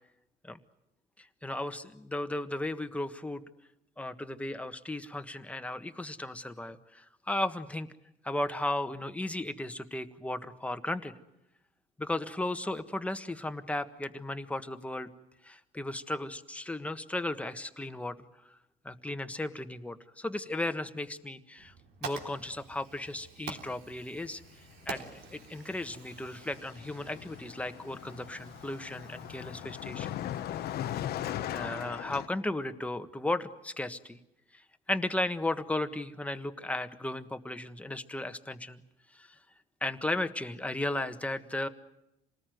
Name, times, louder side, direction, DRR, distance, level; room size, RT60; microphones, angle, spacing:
voice 1, 1.4-3.4 4.0-7.9 8.2-11.1 12.0-15.1 15.4-18.2 18.8-21.7 22.0-24.4 24.9-30.1 31.5-34.2 34.5-34.6 34.9-38.8 39.1-39.3 39.8-41.7, left 1 dB, 10° left, 8 dB, 1.5 m, -35 dB
Fire, 21.6-31.0, right 5 dB, 75° right, 3.5 m, -48 dB
Car passing by, 24.8-25.0 25.3-32.3, left 11 dB, 70° left, 1.0 m, -39 dB
27.5 x 19.5 x 9.3 m, 0.87 s
cardioid pair, 110°, 17 cm